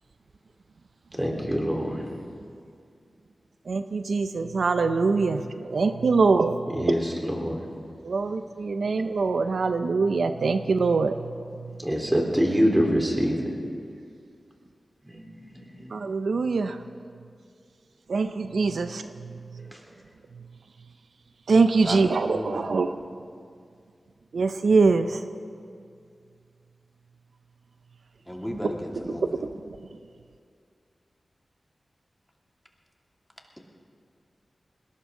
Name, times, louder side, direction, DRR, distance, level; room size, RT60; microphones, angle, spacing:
voice 1, 1.2-2.2 5.3-5.6 6.7-7.6 8.8-8.9 11.7-13.3 15.0-15.9 19.7-19.8, equal, 15° right, 0 dB, 3.7 m, -26 dB
voice 2, 3.7-5.4 5.7-6.5 8.0-11.1 15.9-16.7 18.1-19.0 21.5-22.9 24.3-25.1, right 4 dB, 80° right, 9 dB, 0.5 m, -23 dB
voice 3, 21.8-22.7 28.3-29.3, equal, 10° left, 0 dB, 2.5 m, -34 dB
21.0 x 18.0 x 3.8 m, 2.3 s
cardioid pair, 45°, 0 cm